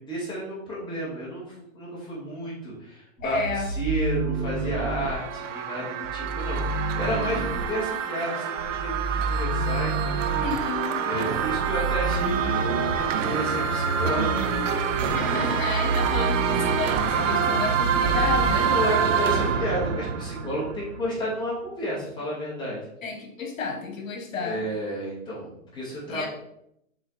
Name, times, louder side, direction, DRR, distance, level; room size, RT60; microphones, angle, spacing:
voice 1, 0.0-10.4 11.0-14.7 15.2-15.6 18.6-22.8 24.4-26.3, equal, 10° left, -7 dB, 2.3 m, -32 dB
voice 2, 3.2-3.7 10.4-11.1 15.0-18.7 23.0-24.6 26.1-26.3, left 4 dB, 70° left, 3 dB, 1.6 m, -31 dB
sound 1, 3.2-5.1 6.0-7.7 8.6-10.6 11.3-18.6, right 3 dB, 30° right, 0.7 m, -30 dB
sound 2, 4.2-21.2, right 7 dB, 65° right, 0.8 m, -27 dB
6.9 x 4.4 x 3.4 m, 0.78 s
hypercardioid pair, 140°, 41 cm